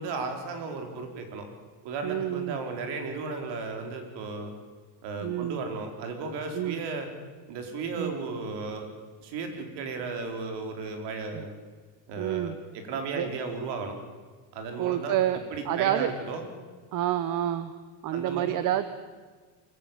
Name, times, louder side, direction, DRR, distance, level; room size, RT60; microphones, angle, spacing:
voice 1, 0.0-1.4 1.8-4.5 5.0-7.1 7.5-8.9 9.2-11.5 12.1-14.0 14.5-15.1 15.5-16.5 18.1-18.6, right 4 dB, 65° right, 5 dB, 4.6 m, -35 dB
voice 2, 2.0-2.6 5.2-5.6 6.5-6.8 8.0-8.1 11.3-11.4 12.2-12.6 13.1-13.3 14.8-15.4 15.6-16.1 16.9-17.7 18.0-18.9, right 12 dB, 45° right, 12 dB, 1.0 m, -28 dB
24.0 x 15.5 x 9.2 m, 1.4 s
cardioid pair, 155°, 44 cm